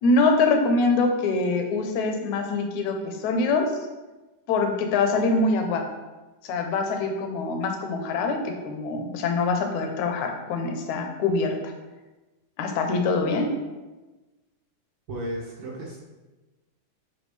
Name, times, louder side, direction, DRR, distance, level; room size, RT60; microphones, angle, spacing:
voice 1, 0.0-3.7 4.5-5.8 6.4-11.7 12.6-13.5, left 3 dB, 70° left, 4 dB, 2.1 m, -24 dB
voice 2, 15.1-16.0, right 1 dB, 70° right, -3 dB, 1.1 m, -33 dB
10.5 x 4.8 x 3.4 m, 1.2 s
omnidirectional pair, 3.6 m